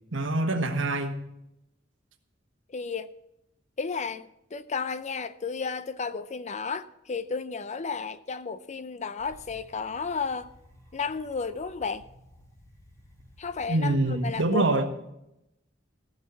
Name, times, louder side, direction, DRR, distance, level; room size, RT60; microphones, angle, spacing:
voice 1, 0.1-1.1 13.7-14.9, right 2 dB, 70° right, 1.5 m, -25 dB
voice 2, 2.7-3.1 3.8-10.5 10.9-12.0 13.4-14.6, left 5 dB, 35° left, 0.5 m, -33 dB
sound 1, 9.2-14.3, equal, 15° left, 2.7 m, -54 dB
15.0 x 6.6 x 7.2 m
head